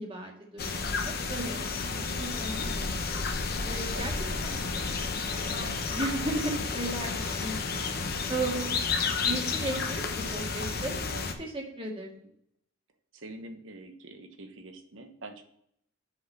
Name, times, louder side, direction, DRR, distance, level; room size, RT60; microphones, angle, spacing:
voice 1, 0.0-2.8 3.6-4.1 4.4-4.6 5.2-7.6 8.3-8.7 9.2-10.9 11.4-12.1, right 2 dB, 25° right, 0 dB, 1.8 m, -35 dB
sound 1, 0.6-11.3, left 4 dB, 50° left, 0.9 m, -31 dB
voice 2, 3.9-4.5 8.9-9.0 11.1-11.3 13.1-15.4, right 2 dB, 75° right, 6 dB, 1.2 m, -46 dB
5.8 x 5.2 x 6.6 m, 0.70 s
head